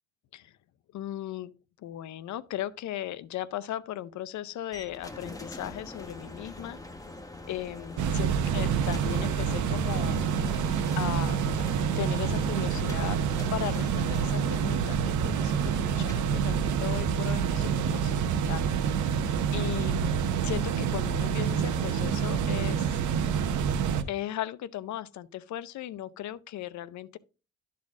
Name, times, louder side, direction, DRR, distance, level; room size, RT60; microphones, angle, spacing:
voice 1, 0.9-1.5 1.8-6.8 7.5-10.2 11.0-11.5 12.0-13.2 13.5-19.2 19.5-22.9 24.1-27.2, left 12 dB, 70° left, 0.6 m, -37 dB
sound 1, 4.7-22.6, left 2 dB, 10° left, 1.2 m, -45 dB
sound 2, 8.0-24.0, right 7 dB, 75° right, 0.9 m, -27 dB
12.0 x 4.2 x 3.6 m
cardioid pair, 90°, 30 cm